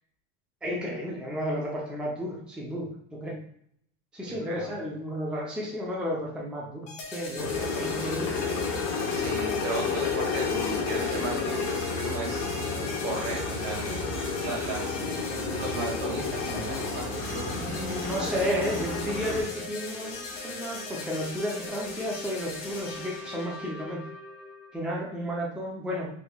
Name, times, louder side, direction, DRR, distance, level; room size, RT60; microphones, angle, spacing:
voice 1, 0.6-3.4 4.1-8.5 17.5-24.0 24.7-26.1, equal, 5° right, -4 dB, 0.5 m, -33 dB
voice 2, 4.3-4.7 9.1-12.5 13.0-13.8 14.4-15.2 15.5-17.8 18.2-18.4, right 2 dB, 65° right, -1 dB, 1.4 m, -35 dB
sound 1, 6.9-24.8, left 3 dB, 85° left, 1.2 m, -38 dB
sound 2, 7.4-19.4, left 4 dB, 65° left, 1.1 m, -31 dB
3.5 x 3.0 x 2.3 m, 0.67 s
supercardioid pair, 130°, 35 cm